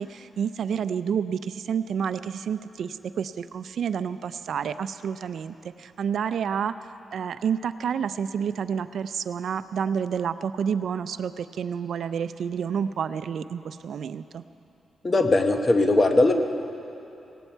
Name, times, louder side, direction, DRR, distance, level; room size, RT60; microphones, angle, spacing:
voice 1, 0.0-6.7 7.1-14.4, right 7 dB, 70° right, 13 dB, 0.4 m, -29 dB
voice 2, 15.0-16.3, left 2 dB, 30° left, 5 dB, 1.1 m, -19 dB
18.0 x 17.0 x 4.5 m, 2.8 s
wide cardioid pair, 120°, 0 cm